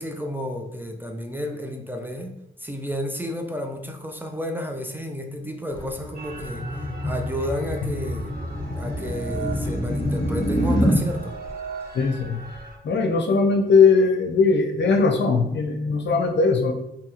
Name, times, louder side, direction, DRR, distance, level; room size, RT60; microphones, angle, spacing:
voice 1, 0.0-8.3 8.8-11.4, equal, 10° right, 3 dB, 0.4 m, -32 dB
sound 1, 5.7-11.0, equal, 20° left, 0.8 m, -26 dB
sound 2, 6.1-12.8, right 4 dB, 45° right, 0.7 m, -38 dB
voice 2, 11.9-12.4 12.8-16.7, left 4 dB, 60° left, 4 dB, 0.5 m, -19 dB
2.8 x 2.7 x 2.4 m, 0.84 s
supercardioid pair, 45°, 21 cm